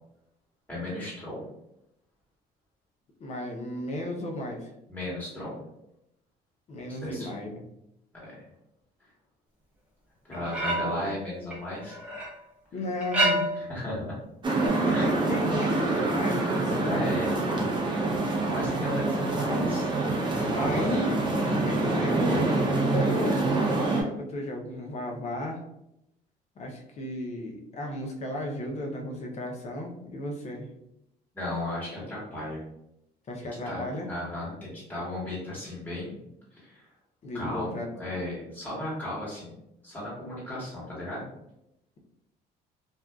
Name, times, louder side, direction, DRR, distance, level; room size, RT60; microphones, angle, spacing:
voice 1, 0.7-1.4 4.9-5.6 6.9-7.3 8.2-8.3 10.3-12.0 13.7-14.1 14.9-15.1 16.7-17.3 18.5-19.9 20.3-21.1 22.3-22.5 31.3-32.6 33.6-36.2 36.6-36.8 37.3-39.5 39.8-41.3, left 1 dB, 10° left, -8 dB, 1.4 m, -35 dB
voice 2, 3.2-4.7 6.7-7.6 12.7-13.5 14.7-17.0 20.5-21.0 21.6-25.6 26.6-30.7 33.3-34.1 37.2-38.1, left 1 dB, 40° left, 1 dB, 0.6 m, -34 dB
sound 1, 10.3-11.1 11.5-12.3 13.0-13.8 14.6-14.7, right 1 dB, 5° right, 0.9 m, -28 dB
sound 2, 14.4-24.0, right 2 dB, 30° right, 0.6 m, -26 dB
2.6 x 2.2 x 2.2 m, 0.83 s
cardioid pair, 110°, 17 cm